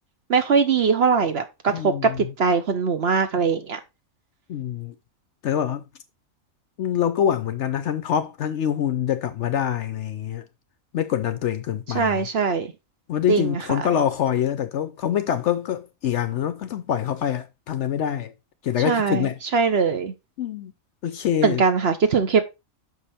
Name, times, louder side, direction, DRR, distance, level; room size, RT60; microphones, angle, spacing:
voice 1, 0.3-3.8 11.9-12.7 13.3-13.9 18.9-20.1 21.4-22.4, right 5 dB, 55° right, 0.9 m, -21 dB
voice 2, 1.7-2.3 4.5-4.9 5.4-5.8 6.8-10.4 10.9-12.3 13.1-18.3 18.6-19.3 20.4-20.7 21.0-21.6, left 9 dB, 65° left, 0.8 m, -25 dB
6.6 x 5.1 x 4.2 m
omnidirectional pair, 1.5 m